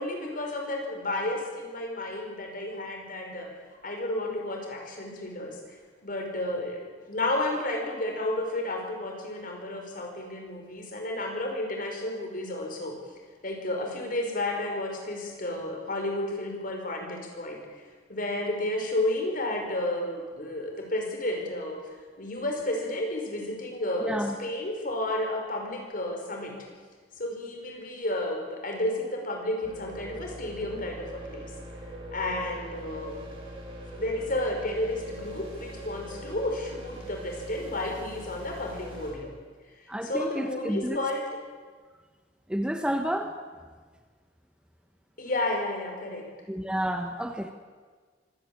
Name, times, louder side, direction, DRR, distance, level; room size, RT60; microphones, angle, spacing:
voice 1, 0.0-3.5 3.8-5.6 6.0-6.8 7.1-13.0 13.4-17.8 18.1-21.8 22.2-26.6 27.2-31.5 32.1-33.2 34.0-39.3 40.0-41.3 45.2-46.3, left 1 dB, 50° left, 2 dB, 5.2 m, -32 dB
voice 2, 24.0-24.3 39.9-41.0 42.5-43.3 46.5-47.5, equal, 5° right, 5 dB, 1.2 m, -30 dB
sound 1, 29.6-39.1, equal, 35° right, 6.4 m, -41 dB
25.0 x 16.5 x 8.6 m, 1.5 s
head